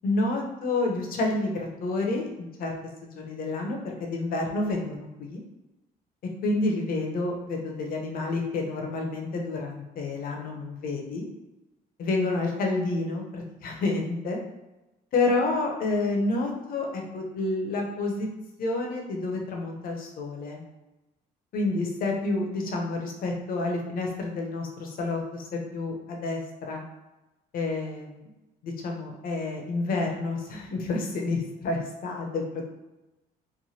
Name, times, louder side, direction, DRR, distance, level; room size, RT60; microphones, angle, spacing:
voice 1, 0.0-2.7 3.0-5.4 6.4-11.2 12.0-14.4 15.1-18.3 18.6-20.6 21.5-26.8 27.5-28.3 28.6-32.7, left 2 dB, 60° left, 1 dB, 0.7 m, -29 dB
3.1 x 2.1 x 2.8 m, 1.0 s
cardioid pair, 110°, 17 cm